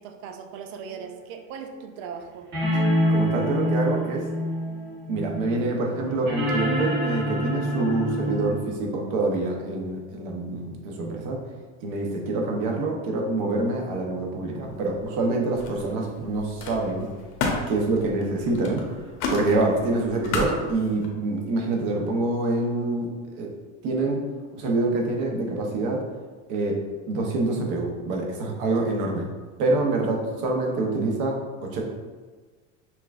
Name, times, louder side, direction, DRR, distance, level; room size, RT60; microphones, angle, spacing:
voice 1, 0.0-2.5, right 6 dB, 90° right, 5 dB, 0.5 m, -39 dB
sound 1, 0.9-1.0 2.5-8.5, equal, 30° right, 1.3 m, -26 dB
voice 2, 3.1-4.2 5.1-11.4 11.8-17.1 17.7-18.8 19.3-23.5 23.8-24.2 24.6-26.0 26.5-26.8 27.1-29.3 29.6-31.8, right 2 dB, 55° right, 0 dB, 0.8 m, -26 dB
Camera, 14.6-15.2 15.5-21.1, left 3 dB, 65° left, 0.8 m, -33 dB
5.7 x 2.3 x 2.4 m, 1.4 s
supercardioid pair, 145°, 38 cm